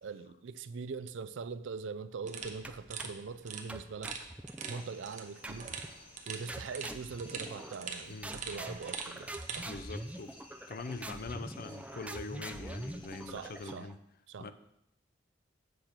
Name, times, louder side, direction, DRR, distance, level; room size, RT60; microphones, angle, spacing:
voice 1, 0.0-4.1 4.7-5.8 6.3-9.7 13.3-13.9 14.3-14.5, right 5 dB, 70° right, 0.4 m, -42 dB
sound 1, 2.2-9.7, right 6 dB, 40° right, 0.8 m, -44 dB
sound 2, 2.6-3.3 3.7-4.9 5.4-6.0 6.5-7.9 8.2-13.9, right 1 dB, 5° right, 0.4 m, -44 dB
sound 3, 4.6-13.7, left 2 dB, 30° left, 1.0 m, -57 dB
voice 2, 9.6-10.3 10.7-14.0 14.4-14.5, left 3 dB, 50° left, 0.5 m, -43 dB
7.7 x 4.4 x 6.6 m
head